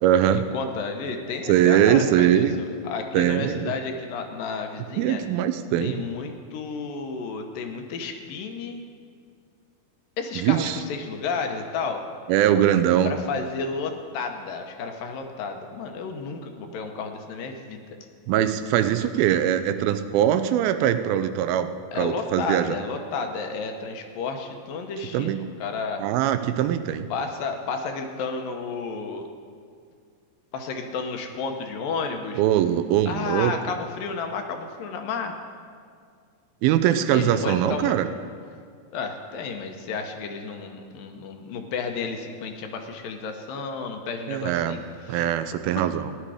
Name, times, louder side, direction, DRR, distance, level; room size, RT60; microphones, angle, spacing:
voice 1, 0.0-0.5 1.5-2.5 3.1-3.7 5.0-6.0 10.4-10.8 12.3-13.1 18.3-21.7 22.0-22.8 25.1-25.5 26.0-27.1 32.4-33.5 36.6-38.1 44.3-44.8 45.1-46.1, right 11 dB, 85° right, 10 dB, 2.5 m, -22 dB
voice 2, 0.5-5.2 5.8-8.8 10.2-12.0 13.0-17.9 21.9-26.0 27.1-29.3 30.5-32.4 33.1-35.3 37.1-38.0 38.9-45.2 45.8-45.9, left 4 dB, 75° left, 4 dB, 2.6 m, -32 dB
16.0 x 11.0 x 4.9 m, 2.1 s
omnidirectional pair, 4.2 m